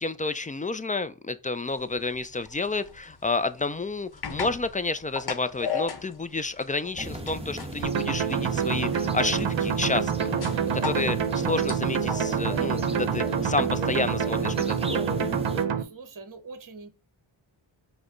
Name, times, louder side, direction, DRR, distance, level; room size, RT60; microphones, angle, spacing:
voice 1, 0.0-10.3 10.7-15.0, left 3 dB, 20° left, 0.3 m, -30 dB
sound 1, 1.7-13.0, left 6 dB, 50° left, 0.9 m, -38 dB
sound 2, 7.0-15.7, equal, 10° right, 0.9 m, -35 dB
sound 3, 7.8-15.8, right 7 dB, 65° right, 0.7 m, -27 dB
voice 2, 15.8-16.9, right 4 dB, 40° right, 1.0 m, -43 dB
5.0 x 2.2 x 3.7 m
cardioid pair, 60°, 48 cm